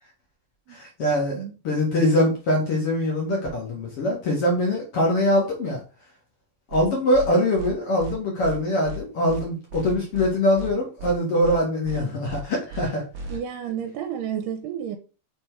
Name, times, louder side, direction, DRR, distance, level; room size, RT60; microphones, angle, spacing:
voice 1, 0.7-5.8 6.7-13.0, left 1 dB, 60° left, 1.5 m, -23 dB
sound 1, 6.7-6.8 7.1-7.3 7.6-7.7 8.0-8.1 8.4-8.6 8.8-9.0 9.3-9.4 9.7-10.3 10.6-10.7 11.0-11.1 11.4-11.6 11.8-12.0 12.3-12.4 12.7-12.8 13.1-13.4, right 1 dB, 60° right, 1.8 m, -34 dB
voice 2, 13.3-15.0, right 9 dB, 85° right, 2.7 m, -31 dB
6.8 x 3.5 x 4.5 m
omnidirectional pair, 4.7 m